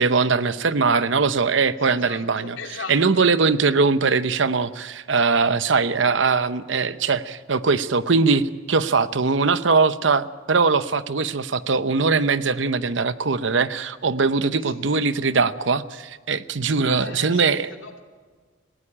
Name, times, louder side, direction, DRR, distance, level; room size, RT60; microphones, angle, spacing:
voice 1, 0.0-2.6 2.9-17.7, right 4 dB, 70° right, 14 dB, 0.8 m, -21 dB
voice 2, 1.8-3.2 14.6-14.7 17.0-18.0, left 4 dB, 85° left, 4 dB, 2.7 m, -39 dB
18.5 x 16.0 x 9.9 m, 1.5 s
head